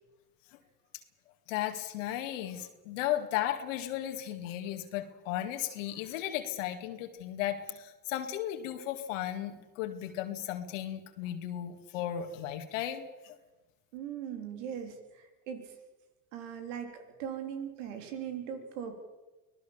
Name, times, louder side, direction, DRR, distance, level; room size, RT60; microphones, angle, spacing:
voice 1, 1.5-13.4, left 12 dB, 90° left, 6 dB, 2.1 m, -35 dB
voice 2, 13.9-15.7 16.3-19.0, right 8 dB, 90° right, 6 dB, 3.5 m, -40 dB
25.0 x 18.0 x 7.2 m, 1.1 s
supercardioid pair, 70°, 36 cm